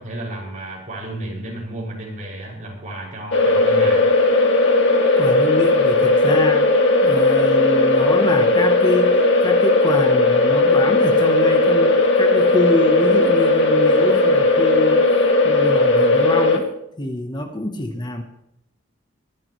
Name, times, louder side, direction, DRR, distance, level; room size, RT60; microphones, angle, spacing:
voice 1, 0.0-4.1, right 1 dB, 40° right, -3 dB, 6.5 m, -32 dB
sound 1, 3.3-16.6, left 2 dB, 60° left, 2.3 m, -16 dB
voice 2, 5.2-6.7 7.0-15.0 15.4-16.7 17.0-18.2, left 1 dB, 20° left, 5 dB, 1.1 m, -25 dB
24.0 x 12.0 x 3.2 m, 0.81 s
head